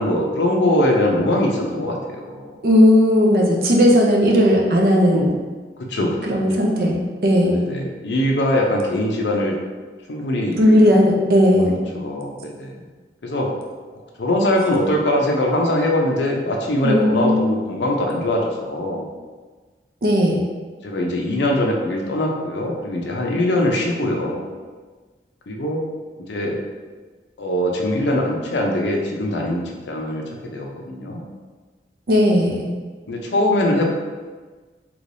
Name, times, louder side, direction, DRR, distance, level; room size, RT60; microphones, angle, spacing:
voice 1, 0.0-2.6 5.8-6.4 7.5-9.6 10.1-10.8 11.6-12.7 13.2-13.5 14.2-19.1 20.8-24.5 25.5-25.8 26.3-26.6 27.4-30.2 30.5-31.2 33.1-33.9, left 1 dB, 85° left, 0 dB, 0.5 m, -22 dB
voice 2, 2.6-5.3 6.2-7.7 10.6-11.8 16.8-17.5 20.0-20.4 32.1-32.7, equal, 55° right, -1 dB, 0.5 m, -16 dB
3.3 x 3.1 x 2.6 m, 1.4 s
head